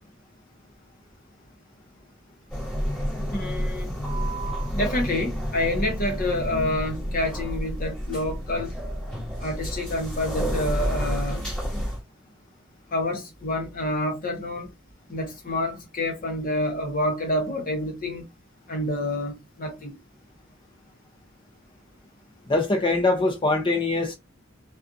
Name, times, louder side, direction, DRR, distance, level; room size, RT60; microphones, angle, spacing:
sound 1, 2.5-12.0, equal, 5° left, 1.2 m, -30 dB
voice 1, 3.3-4.0 4.7-8.7 9.4-11.4 12.9-14.7 15.1-18.3 18.7-20.0, left 1 dB, 45° left, 1.0 m, -28 dB
voice 2, 22.5-24.1, left 2 dB, 25° left, 0.6 m, -23 dB
2.5 x 2.3 x 2.5 m
head